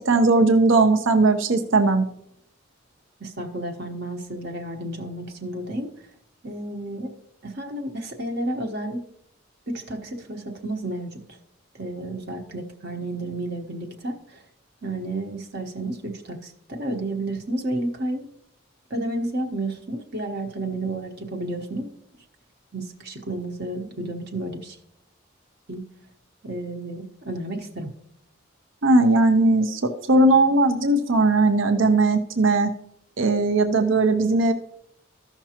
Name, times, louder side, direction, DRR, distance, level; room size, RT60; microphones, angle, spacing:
voice 1, 0.0-2.0 28.8-32.7 33.2-34.5, right 2 dB, 70° right, 7 dB, 0.7 m, -18 dB
voice 2, 3.2-5.9 6.4-7.1 7.4-9.0 9.7-11.4 11.7-14.4 14.8-18.3 18.9-21.9 22.7-24.8 25.7-25.8 26.4-27.9, right 1 dB, 50° right, 2 dB, 1.0 m, -31 dB
14.0 x 5.9 x 2.9 m, 0.74 s
head